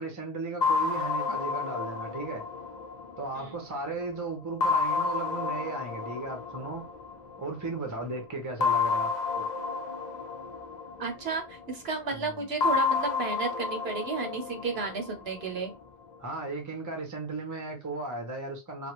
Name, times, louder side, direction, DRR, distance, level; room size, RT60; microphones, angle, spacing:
voice 1, 0.0-2.4 3.2-6.9 7.4-9.5 12.1-12.5 16.2-18.9, right 3 dB, 20° right, 0.7 m, -36 dB
sound 1, 0.6-3.9 4.6-7.5 8.6-11.7 12.6-15.7, left 5 dB, 50° left, 0.6 m, -30 dB
voice 2, 11.0-15.7, right 4 dB, 65° right, 1.0 m, -32 dB
3.4 x 2.3 x 2.9 m
omnidirectional pair, 1.1 m